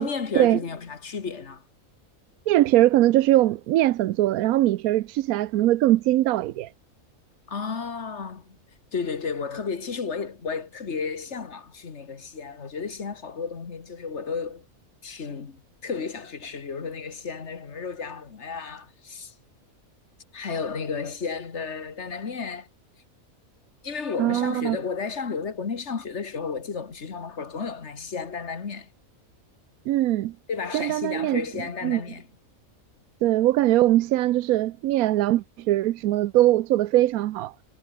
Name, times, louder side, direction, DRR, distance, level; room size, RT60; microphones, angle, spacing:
voice 1, 0.0-1.6 7.5-8.6 8.9-14.7 15.0-19.3 20.3-22.7 23.8-28.9 30.5-32.3, left 5 dB, 55° left, 1.9 m, -33 dB
voice 2, 2.5-6.7 24.2-24.8 29.9-30.3 30.7-31.4 31.8-32.0 33.2-37.5, right 15 dB, 85° right, 1.1 m, -21 dB
omnidirectional pair, 1.5 m